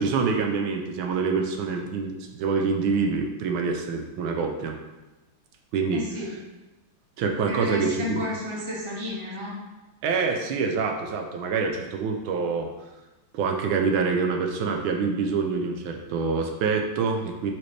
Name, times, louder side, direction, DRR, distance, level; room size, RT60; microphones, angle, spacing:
voice 1, 0.0-4.8 5.7-6.0 7.2-8.2 10.0-12.7 13.3-17.5, right 5 dB, 80° right, 3 dB, 1.5 m, -26 dB
voice 2, 5.9-6.3 7.5-9.6, left 1 dB, 20° right, -4 dB, 1.1 m, -31 dB
7.0 x 4.3 x 3.2 m, 1.1 s
omnidirectional pair, 2.2 m